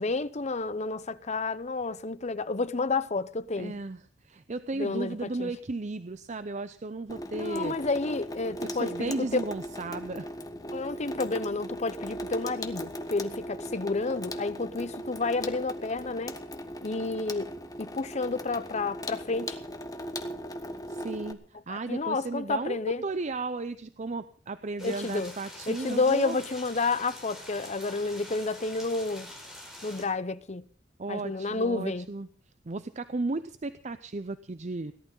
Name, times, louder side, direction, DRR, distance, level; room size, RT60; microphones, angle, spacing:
voice 1, 0.0-3.7 4.8-5.5 7.3-9.3 10.7-16.4 16.8-17.5 17.8-19.6 21.7-23.0 24.8-25.3 25.7-29.3 29.8-30.6 31.1-32.1, left 3 dB, 40° left, 0.8 m, -30 dB
voice 2, 3.6-7.8 8.6-10.3 20.9-26.4 31.0-32.3 32.6-34.9, right 3 dB, 40° right, 0.6 m, -35 dB
Water tap faucet / Sink (filling or washing), 7.1-21.3, equal, 20° left, 1.2 m, -38 dB
sound 1, 24.8-30.0, left 1 dB, 5° right, 4.7 m, -45 dB
17.5 x 11.5 x 5.6 m
head